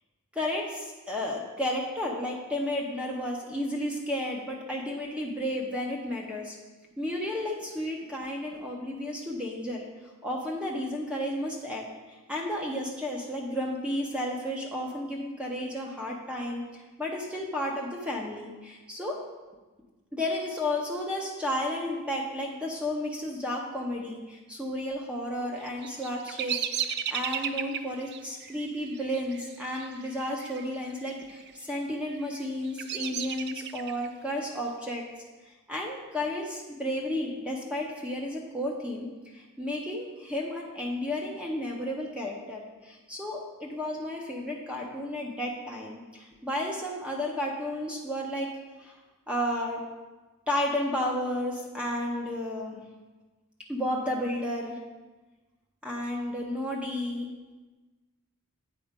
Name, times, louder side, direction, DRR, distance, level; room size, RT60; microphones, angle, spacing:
voice 1, 0.3-6.6 7.0-9.9 10.2-19.2 20.1-35.0 35.5-39.1 39.3-48.5 48.8-49.0 49.3-49.8 50.5-52.8 53.7-54.8 55.8-57.3, left 1 dB, 5° right, -1 dB, 0.7 m, -32 dB
Bird vocalization bird call bird song, 25.6-30.7 30.9-31.5 32.1-34.1, right 8 dB, 50° right, 0.4 m, -35 dB
8.4 x 4.2 x 5.1 m, 1.2 s
head